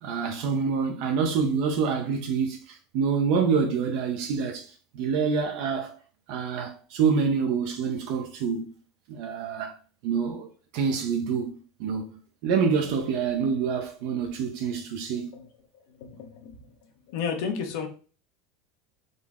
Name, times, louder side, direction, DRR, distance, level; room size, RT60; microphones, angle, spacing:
voice 1, 0.0-6.0 6.3-8.7 9.1-10.5 10.7-11.5 11.8-15.3, right 6 dB, 65° right, 0.6 m, -27 dB
voice 2, 16.0-16.5 17.1-17.9, left 6 dB, 70° left, 0.9 m, -31 dB
3.9 x 2.0 x 3.5 m
supercardioid pair, 140°, 0 cm